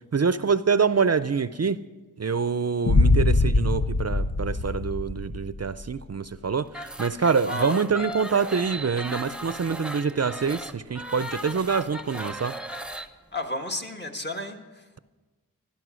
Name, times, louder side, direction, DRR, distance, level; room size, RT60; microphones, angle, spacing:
voice 1, 0.1-1.8 2.2-12.6, right 5 dB, 45° right, 14 dB, 0.5 m, -25 dB
Boom, 2.9-5.8, left 2 dB, 50° left, 0.7 m, -22 dB
sound 1, 6.7-13.1, right 1 dB, 5° right, 0.8 m, -37 dB
voice 2, 7.2-7.8 13.3-14.8, left 1 dB, 30° left, 4 dB, 1.5 m, -33 dB
16.0 x 12.0 x 6.2 m, 1.3 s
wide cardioid pair, 60°, 35 cm